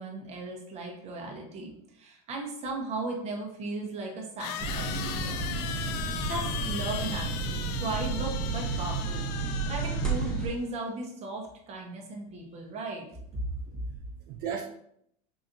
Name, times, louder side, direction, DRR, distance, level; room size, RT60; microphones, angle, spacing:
voice 1, 0.0-5.8 6.2-9.3 9.7-13.0 13.3-13.5 13.9-14.0, right 2 dB, 35° right, 0 dB, 1.0 m, -36 dB
sound 1, 2.8-2.9 4.4-10.5, left 9 dB, 85° left, 0.4 m, -38 dB
train local train interior stops, 4.6-10.5, right 4 dB, 5° left, 0.8 m, -32 dB
voice 2, 13.4-14.6, right 8 dB, 50° right, 1 dB, 0.5 m, -38 dB
5.0 x 2.7 x 2.6 m, 0.72 s
supercardioid pair, 140°, 20 cm